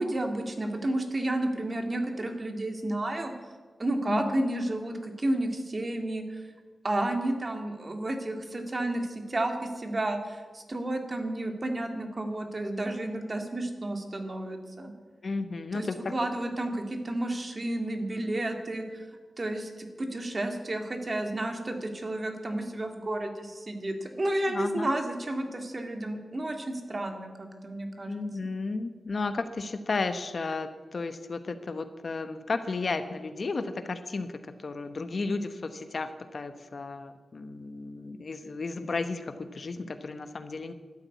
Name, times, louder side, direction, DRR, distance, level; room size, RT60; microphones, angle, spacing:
voice 1, 0.0-3.3 3.8-6.4 6.8-14.9 15.7-19.1 19.4-28.1, right 1 dB, 30° right, 4 dB, 2.1 m, -31 dB
voice 2, 4.1-4.4 15.2-16.1 24.5-24.9 28.1-40.7, left 3 dB, 50° left, 9 dB, 1.0 m, -33 dB
12.5 x 12.0 x 9.3 m, 1.4 s
wide cardioid pair, 115°, 0 cm